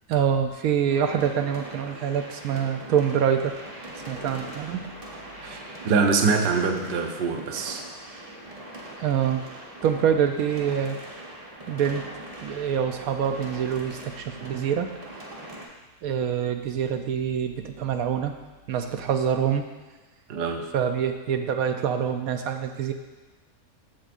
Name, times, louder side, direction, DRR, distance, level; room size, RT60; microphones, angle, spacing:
voice 1, 0.1-3.6 4.1-4.9 9.0-9.4 9.8-11.0 11.7-12.1 12.4-14.9 16.0-18.3 18.7-19.7 20.7-22.9, right 8 dB, 80° right, 6 dB, 1.1 m, -25 dB
sound 1, 0.9-15.7, right 1 dB, 30° right, 1.0 m, -41 dB
voice 2, 5.8-7.8 20.3-20.7, right 4 dB, 50° right, 4 dB, 0.7 m, -24 dB
14.0 x 4.7 x 2.5 m, 1.2 s
omnidirectional pair, 1.5 m